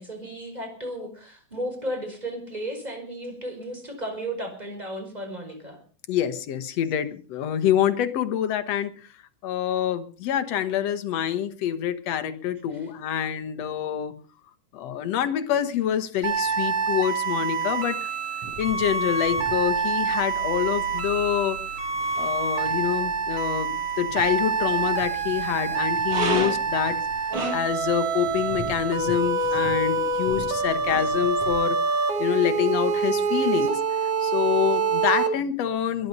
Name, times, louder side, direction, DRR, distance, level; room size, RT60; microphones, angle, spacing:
voice 1, 0.0-5.8 12.7-12.9 31.0-31.1 33.6-33.7, right 1 dB, 10° right, 4 dB, 5.2 m, -34 dB
voice 2, 6.1-9.1 9.4-14.1 14.7-18.1 18.6-21.6 22.2-31.8 32.2-36.1, left 10 dB, 60° left, 11 dB, 2.2 m, -26 dB
sound 1, 16.2-35.3, right 5 dB, 50° right, 3.1 m, -26 dB
sound 2, 18.4-31.5, right 1 dB, 80° right, 7.1 m, -37 dB
21.5 x 11.0 x 5.4 m, 0.40 s
omnidirectional pair, 3.6 m